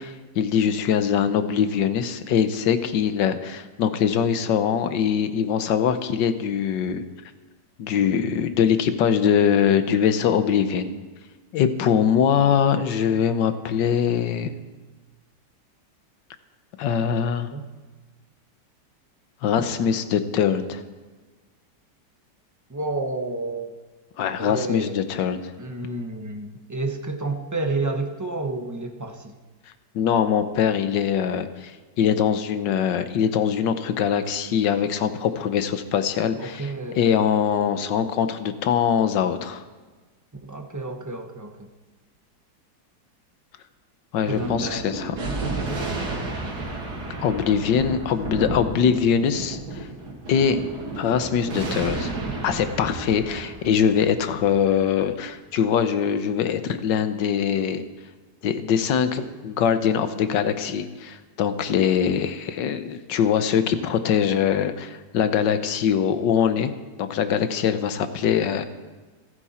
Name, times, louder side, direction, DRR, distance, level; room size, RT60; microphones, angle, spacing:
voice 1, 0.0-7.0 7.8-10.9 11.5-14.5 16.8-17.5 19.4-20.8 24.2-25.5 29.9-39.6 44.1-45.2 47.2-49.9 50.3-50.6 51.0-52.1 52.4-57.8 58.4-66.7 67.0-68.6, left 8 dB, 80° left, 10 dB, 1.6 m, -22 dB
voice 2, 22.7-23.7 24.4-25.0 25.6-29.4 36.4-37.1 40.4-41.7 44.3-44.9, right 2 dB, 10° right, 4 dB, 1.0 m, -30 dB
Thunder, 44.2-55.1, right 2 dB, 65° right, 2.7 m, -32 dB
27.5 x 9.8 x 4.4 m, 1.3 s
omnidirectional pair, 1.9 m